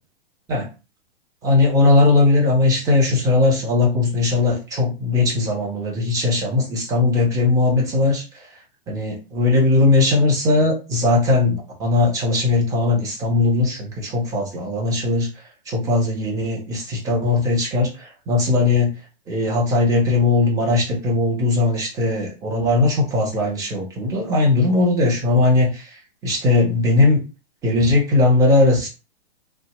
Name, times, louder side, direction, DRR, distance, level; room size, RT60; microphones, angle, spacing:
voice 1, 1.4-8.2 8.9-15.3 15.7-18.9 19.3-25.8 26.2-27.2 27.6-28.9, left 3 dB, 10° right, 1 dB, 0.5 m, -19 dB
2.7 x 2.1 x 2.8 m, 0.31 s
hypercardioid pair, 140°, 31 cm